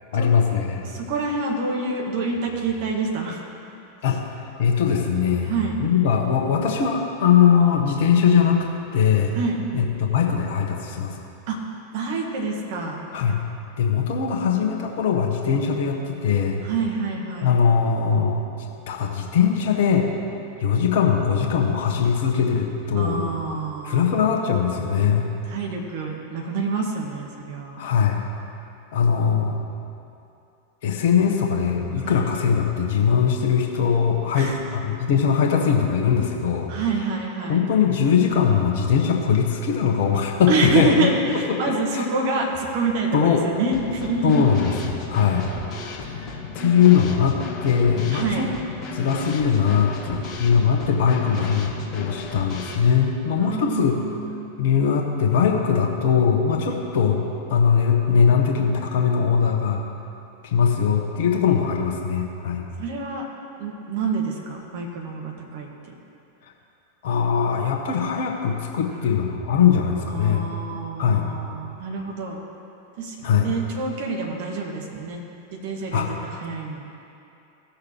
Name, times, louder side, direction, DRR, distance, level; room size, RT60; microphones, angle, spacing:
voice 1, 0.1-0.8 4.0-5.5 5.8-8.6 8.9-9.3 9.7-11.2 13.1-13.4 13.8-16.6 17.4-18.4 18.9-20.1 20.6-23.3 23.8-25.3 27.8-28.2 28.9-29.6 30.8-36.7 37.5-41.1 41.9-42.0 43.1-43.5 44.2-45.5 46.1-48.5 48.9-54.0 54.6-57.2 57.5-59.8 60.4-62.6 67.0-70.5 71.0-71.3 73.2-73.5 75.9-76.1, left 7 dB, 55° left, 1 dB, 1.2 m, -21 dB
voice 2, 0.8-3.4 5.4-5.7 9.3-9.6 11.5-11.6 11.9-13.0 16.6-17.5 22.9-24.4 25.5-27.8 32.0-32.3 34.4-34.6 36.7-37.6 40.5-44.5 46.6-46.7 48.1-48.5 53.4-54.5 56.7-56.8 62.8-63.3 63.6-65.7 70.1-72.4 73.0-75.2 75.5-76.9, right 3 dB, 50° right, 0 dB, 1.5 m, -27 dB
Drum kit / Snare drum, 43.7-52.8, left 4 dB, 35° left, 1.3 m, -35 dB
17.0 x 6.6 x 3.0 m, 2.7 s
figure-of-eight pair, 90°, 0 cm